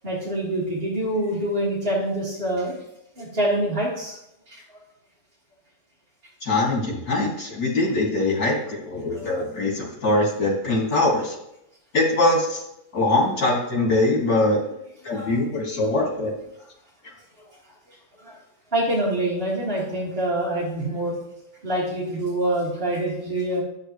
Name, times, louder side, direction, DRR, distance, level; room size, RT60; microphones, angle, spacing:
voice 1, 0.0-2.8 3.2-4.2 4.5-4.6 9.1-9.3 15.0-15.3 18.2-18.4 18.7-21.2 21.6-23.6, right 1 dB, 40° right, -8 dB, 2.4 m, -25 dB
voice 2, 6.4-11.3 11.9-12.6 12.9-14.6 15.0-16.3 17.0-17.1, left 2 dB, 85° left, -2 dB, 2.8 m, -22 dB
10.5 x 8.5 x 3.1 m, 0.83 s
omnidirectional pair, 1.5 m